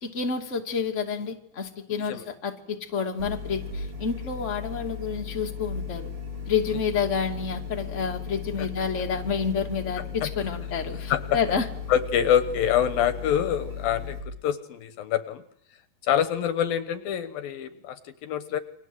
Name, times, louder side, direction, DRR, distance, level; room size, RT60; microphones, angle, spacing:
voice 1, 0.0-6.0 6.5-11.7, left 6 dB, 20° left, 3 dB, 2.4 m, -29 dB
sound 1, 3.2-14.2, left 6 dB, 35° right, 8.3 m, -36 dB
voice 2, 11.9-15.4 16.0-18.6, left 9 dB, 70° left, 11 dB, 2.9 m, -26 dB
29.5 x 25.0 x 8.0 m, 0.70 s
omnidirectional pair, 4.5 m